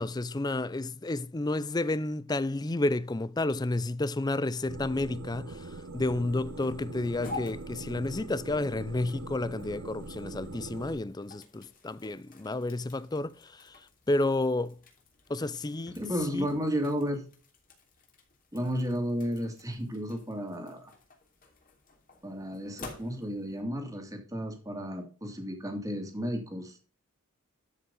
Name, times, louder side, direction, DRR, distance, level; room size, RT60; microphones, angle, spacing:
voice 1, 0.0-14.8 15.3-16.0 16.3-16.5, left 2 dB, 20° left, 0.4 m, -31 dB
sound 1, 4.7-11.0, right 2 dB, 75° right, 0.9 m, -42 dB
sound 2, 5.6-23.6, left 3 dB, 40° left, 3.0 m, -50 dB
voice 2, 15.9-17.3 18.5-20.9 22.2-26.8, equal, 15° right, 2.3 m, -33 dB
12.5 x 5.7 x 3.9 m
head